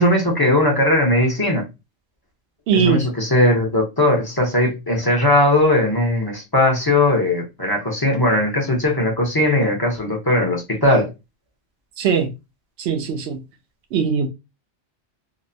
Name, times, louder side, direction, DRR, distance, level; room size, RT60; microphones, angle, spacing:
voice 1, 0.0-1.7 2.7-11.1, left 1 dB, 25° left, 0.6 m, -18 dB
voice 2, 2.7-3.1 12.0-12.3 12.8-13.4 13.9-14.3, right 6 dB, 70° right, 0.8 m, -20 dB
2.8 x 2.0 x 2.5 m
omnidirectional pair, 1.2 m